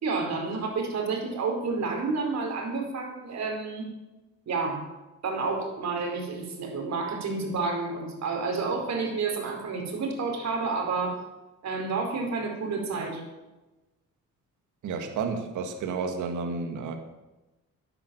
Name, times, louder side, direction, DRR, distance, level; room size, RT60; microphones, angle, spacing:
voice 1, 0.0-3.9 4.5-4.9 5.2-11.2 11.6-13.2, right 4 dB, 60° right, 2 dB, 4.7 m, -30 dB
voice 2, 14.8-16.9, right 5 dB, 80° right, 6 dB, 2.0 m, -31 dB
11.5 x 11.0 x 7.8 m, 1.1 s
cardioid pair, 90°, 30 cm